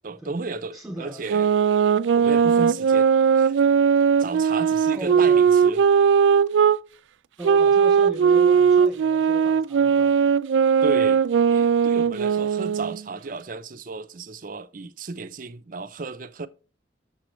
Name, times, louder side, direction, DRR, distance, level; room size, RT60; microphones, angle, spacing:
voice 1, 0.0-1.5 2.1-3.1 3.3-3.6 4.2-5.8 10.8-11.2 11.5-16.5, right 3 dB, 50° right, 0.6 m, -34 dB
voice 2, 0.7-1.3 4.9-5.4 7.4-10.2, right 1 dB, ahead, 2.6 m, -37 dB
sound 1, 1.3-6.8 7.4-13.0, right 7 dB, 90° right, 0.3 m, -19 dB
7.6 x 6.9 x 3.1 m
head